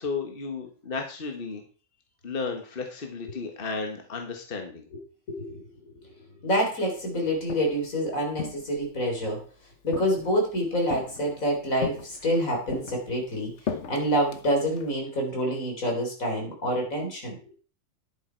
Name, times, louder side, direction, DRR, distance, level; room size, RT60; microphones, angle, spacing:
voice 1, 0.0-1.6 2.2-4.9, left 4 dB, 45° left, 3 dB, 1.7 m, -33 dB
voice 2, 5.3-5.6 6.4-9.4 9.8-13.5 13.9-17.4, equal, 85° left, 1 dB, 4.0 m, -27 dB
Walk footsteps, 7.2-7.9 8.4-9.4 9.9-10.5 10.9-11.4 11.8-12.4 12.7-14.9, left 7 dB, 60° left, 1.2 m, -37 dB
10.5 x 8.5 x 4.6 m, 0.39 s
omnidirectional pair, 1.4 m